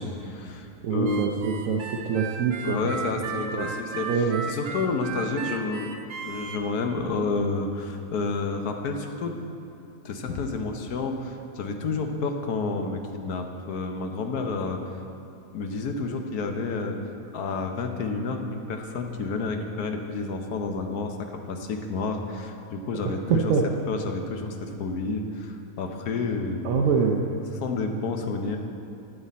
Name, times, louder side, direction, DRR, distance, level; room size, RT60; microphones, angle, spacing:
voice 1, 0.0-1.3 2.6-9.4 10.0-14.9 15.5-17.0 17.3-23.5 23.9-26.7 27.6-28.6, left 3 dB, 90° left, 4 dB, 1.4 m, -30 dB
voice 2, 0.8-2.8 3.5-3.7 4.1-4.5 23.0-23.7 26.6-27.3, right 6 dB, 70° right, 1 dB, 1.0 m, -25 dB
Harmonica, 1.0-6.6, right 6 dB, 90° right, 1.3 m, -35 dB
12.0 x 8.4 x 4.2 m, 2.7 s
omnidirectional pair, 1.6 m